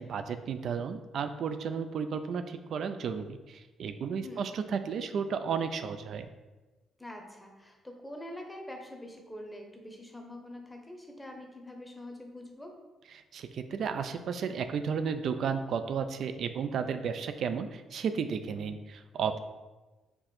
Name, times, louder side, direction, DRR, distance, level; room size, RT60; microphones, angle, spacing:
voice 1, 0.0-6.3 13.3-19.4, right 6 dB, 65° right, 10 dB, 0.3 m, -33 dB
voice 2, 4.2-4.5 7.0-12.7, left 1 dB, 10° left, 2 dB, 0.8 m, -45 dB
4.5 x 2.5 x 4.2 m, 1.2 s
cardioid pair, 90°, 0 cm